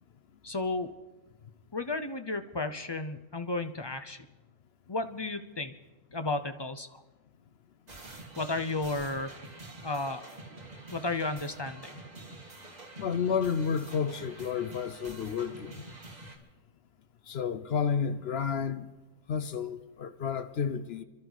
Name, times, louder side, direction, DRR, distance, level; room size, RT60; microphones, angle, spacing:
voice 1, 0.4-1.0 1.7-4.3 4.9-5.7 6.1-7.0 8.4-9.3 9.8-10.2 10.9-11.9, left 2 dB, 35° left, 0.4 m, -33 dB
sound 1, 7.9-16.4, right 2 dB, 30° right, 1.9 m, -47 dB
voice 2, 13.0-15.8 17.3-18.9 19.3-21.0, left 6 dB, 60° left, 0.8 m, -31 dB
28.5 x 12.0 x 4.0 m
omnidirectional pair, 1.3 m